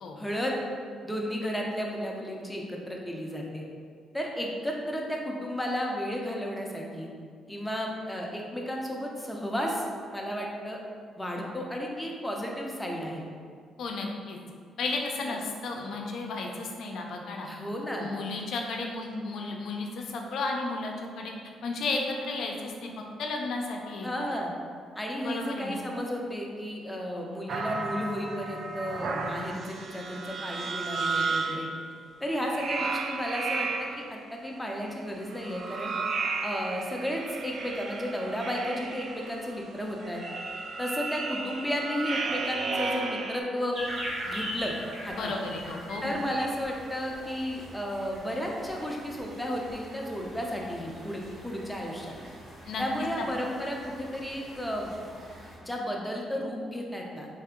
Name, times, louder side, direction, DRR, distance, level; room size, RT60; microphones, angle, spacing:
voice 1, 0.2-0.6 1.0-3.6 4.1-7.1 7.5-10.8 11.2-13.2 15.2-15.3 17.4-18.1 24.0-24.5 25.0-31.7 32.2-35.9 36.4-40.2 40.8-43.8 44.2-44.7 45.0-45.3 46.0-52.2 52.8-54.9 55.6-57.3, equal, 5° left, -1 dB, 0.6 m, -33 dB
voice 2, 13.8-14.4 14.8-17.5 18.0-21.3 21.6-22.9 23.2-24.4 25.2-25.8 45.1-46.2 52.7-52.8 53.2-53.3, left 3 dB, 70° left, 1 dB, 0.5 m, -33 dB
sound 1, 27.5-31.8 32.5-34.2 35.2-43.4, right 4 dB, 55° right, 0.3 m, -33 dB
sound 2, 43.7-55.6, equal, 70° right, 1.4 m, -42 dB
3.4 x 2.7 x 3.6 m, 2.1 s
cardioid pair, 90°, 0 cm